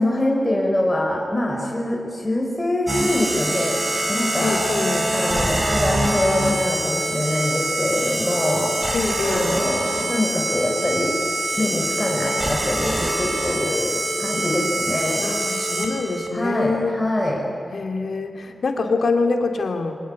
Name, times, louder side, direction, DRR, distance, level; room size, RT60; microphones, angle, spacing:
voice 1, 0.0-3.7 4.1-4.6 5.1-8.7 9.2-11.1 11.6-15.3 16.3-17.4, left 1 dB, 20° left, -2 dB, 4.4 m, -24 dB
sound 1, 2.9-16.3, right 1 dB, 30° right, 5.0 m, -24 dB
voice 2, 4.4-5.1 8.9-9.6 14.4-14.8 15.2-17.0 17.7-19.9, left 3 dB, 80° left, 4 dB, 2.5 m, -25 dB
24.5 x 18.0 x 9.6 m, 2.3 s
wide cardioid pair, 75°, 0 cm